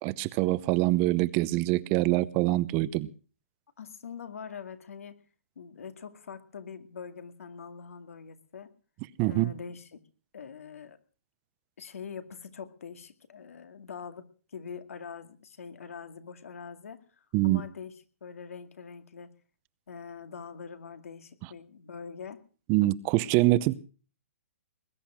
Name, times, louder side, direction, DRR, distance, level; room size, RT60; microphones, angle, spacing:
voice 1, 0.0-3.1 9.2-9.5 17.3-17.6 22.7-23.7, right 18 dB, 30° right, 0.7 m, -25 dB
voice 2, 3.8-5.2 5.6-8.7 9.3-10.0 10.3-11.0 11.8-14.3 14.5-17.9 18.2-19.3 19.9-22.4, left 6 dB, 80° left, 2.2 m, -43 dB
20.5 x 10.5 x 6.1 m
hypercardioid pair, 150°, 8 cm